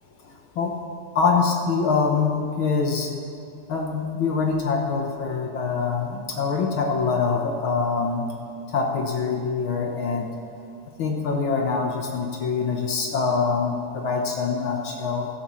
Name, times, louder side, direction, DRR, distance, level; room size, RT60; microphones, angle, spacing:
voice 1, 0.2-0.8 1.1-3.1 3.7-8.3 8.7-10.3 11.0-15.3, left 5 dB, 70° left, 1 dB, 1.2 m, -24 dB
16.0 x 13.0 x 3.2 m, 2.6 s
omnidirectional pair, 3.6 m